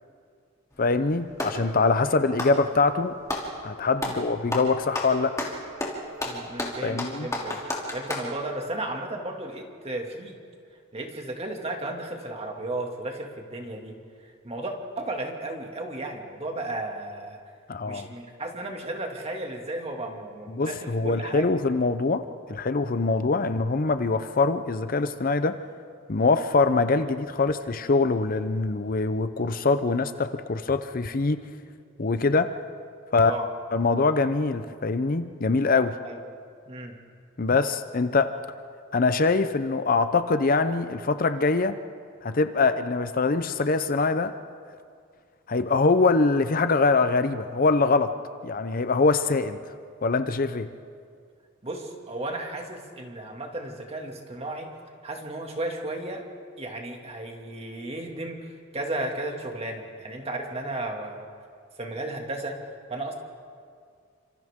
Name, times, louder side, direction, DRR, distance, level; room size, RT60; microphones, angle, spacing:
Clapping, 0.7-1.7 2.3-3.5 4.0-4.2 4.5-8.3, left 1 dB, 15° left, 2.9 m, -31 dB
voice 1, 0.8-3.2 3.6-5.3 6.8-7.3 17.7-18.1 20.5-22.2 22.5-25.6 26.1-31.4 32.0-32.5 33.1-33.3 33.7-36.0 37.4-38.3 38.9-41.8 42.2-44.3 45.5-48.1 48.4-49.6 50.0-50.7, left 3 dB, 45° left, 10 dB, 0.7 m, -23 dB
voice 2, 6.2-7.6 7.9-10.4 10.9-14.0 14.2-17.4 17.9-21.5 33.1-33.5 36.0-36.2 36.7-37.0 51.6-54.7 55.0-56.2 56.6-61.3 61.8-62.6 62.9-63.2, right 2 dB, 30° right, 2 dB, 2.3 m, -34 dB
29.5 x 26.5 x 3.7 m, 2.2 s
head